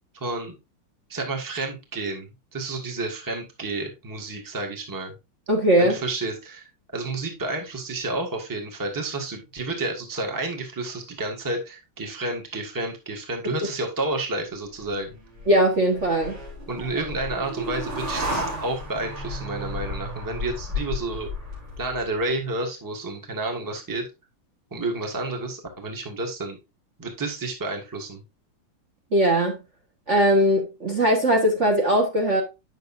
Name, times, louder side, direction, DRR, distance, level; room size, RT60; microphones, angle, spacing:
voice 1, 0.1-0.5 1.1-5.1 5.8-15.2 16.7-21.3 21.8-24.1 24.7-26.6 27.0-28.2, right 2 dB, 10° right, 1.3 m, -30 dB
voice 2, 5.5-6.0 15.5-16.4 29.1-29.6 30.1-32.4, equal, 40° right, 1.5 m, -20 dB
sound 1, 14.8-22.2, left 1 dB, 80° right, 4.4 m, -33 dB
9.1 x 6.4 x 2.5 m
omnidirectional pair, 2.3 m